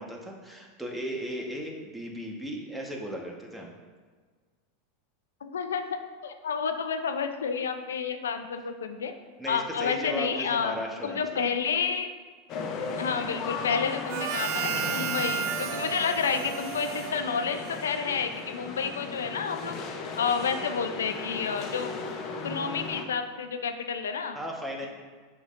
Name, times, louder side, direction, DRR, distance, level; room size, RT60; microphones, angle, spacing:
voice 1, 0.0-3.7 9.4-11.4 24.3-24.9, equal, 5° right, 0 dB, 1.2 m, -36 dB
voice 2, 5.4-5.8 6.2-9.1 9.5-10.8 11.0-12.1 13.0-19.8 20.2-21.9 22.4-24.4, left 6 dB, 90° left, 8 dB, 0.5 m, -30 dB
sound 1, 12.5-23.0, left 4 dB, 45° left, 0.8 m, -36 dB
Harmonica, 14.1-17.9, right 10 dB, 60° right, 0.3 m, -33 dB
7.9 x 5.6 x 2.5 m, 1.5 s
hypercardioid pair, 105°, 0 cm